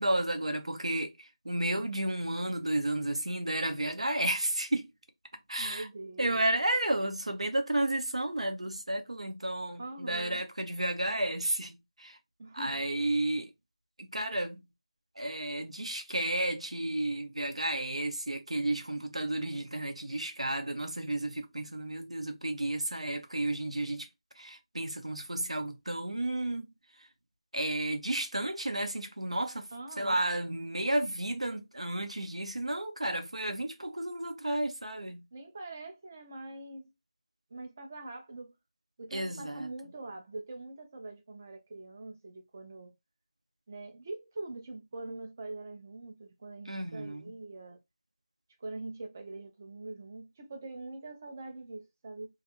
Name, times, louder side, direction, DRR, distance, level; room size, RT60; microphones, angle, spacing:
voice 1, 0.0-4.9 5.5-5.9 6.2-12.2 12.5-13.5 14.0-14.6 15.2-24.1 24.4-26.7 27.5-29.7 30.0-35.2 39.1-39.7 46.7-47.3, right 1 dB, 90° right, 0.8 m, -32 dB
voice 2, 5.6-6.6 9.8-10.4 12.4-12.8 29.7-30.2 35.3-36.9 37.5-38.5 39.0-42.9 43.7-47.8 48.6-52.3, right 2 dB, 25° right, 0.5 m, -43 dB
2.4 x 2.4 x 2.9 m
figure-of-eight pair, 170°, 3 cm